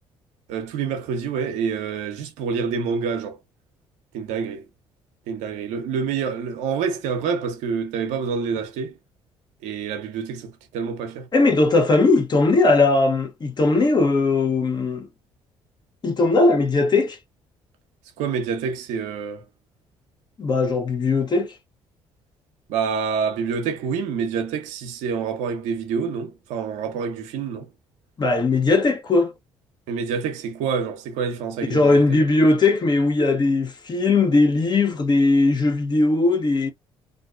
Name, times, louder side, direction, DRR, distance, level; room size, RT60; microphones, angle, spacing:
voice 1, 0.5-3.4 4.1-4.6 5.3-8.9 9.6-11.3 18.2-19.4 22.7-27.7 29.9-32.2, right 6 dB, 80° right, 0.6 m, -27 dB
voice 2, 11.3-15.1 16.0-17.2 20.4-21.5 28.2-29.3 31.7-36.7, left 3 dB, 35° left, 0.7 m, -19 dB
2.5 x 2.2 x 2.4 m
supercardioid pair, 60°, 12 cm